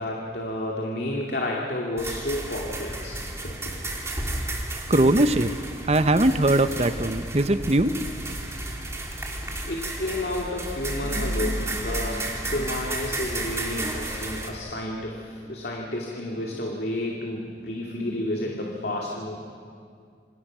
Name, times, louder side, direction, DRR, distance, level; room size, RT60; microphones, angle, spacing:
voice 1, 0.0-3.8 9.3-19.4, left 1 dB, 60° left, -1 dB, 2.4 m, -31 dB
sound 1, 2.0-14.5, right 1 dB, 15° right, 2.8 m, -32 dB
voice 2, 4.9-5.5 5.9-8.0, right 1 dB, 35° right, 11 dB, 0.9 m, -21 dB
28.0 x 25.5 x 6.3 m, 2.2 s
head